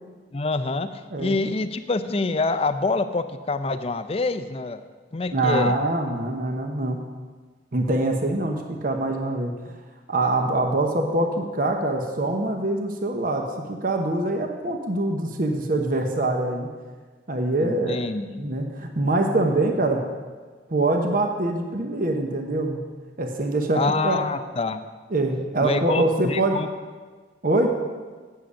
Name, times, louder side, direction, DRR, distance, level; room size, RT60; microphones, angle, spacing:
voice 1, 0.3-4.8 5.1-5.7 17.6-18.5 23.7-24.8 25.6-26.7, left 3 dB, 30° left, 11 dB, 0.5 m, -26 dB
voice 2, 5.3-7.0 7.7-9.7 10.1-16.7 17.3-18.0 18.4-20.0 20.7-22.8 23.2-24.2 25.1-26.6 27.4-27.7, right 2 dB, 50° right, 3 dB, 0.9 m, -24 dB
8.4 x 7.7 x 6.4 m, 1.4 s
head